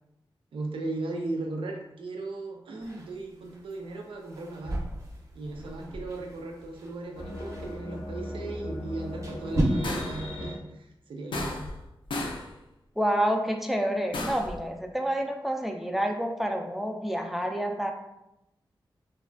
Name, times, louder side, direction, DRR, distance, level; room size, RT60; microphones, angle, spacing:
voice 1, 0.5-4.8 5.4-11.7, right 2 dB, 85° right, 1 dB, 0.4 m, -37 dB
sound 1, 2.8-9.6, right 1 dB, 35° right, 0.7 m, -37 dB
sound 2, 7.1-10.5, left 1 dB, 90° left, 0.8 m, -37 dB
sound 3, 9.8-10.3 11.3-11.8 12.1-12.5 14.1-14.6, left 2 dB, 70° left, 0.4 m, -33 dB
voice 2, 13.0-17.9, equal, ahead, 3 dB, 0.4 m, -28 dB
3.1 x 2.2 x 2.4 m, 0.87 s
cardioid pair, 60°, 9 cm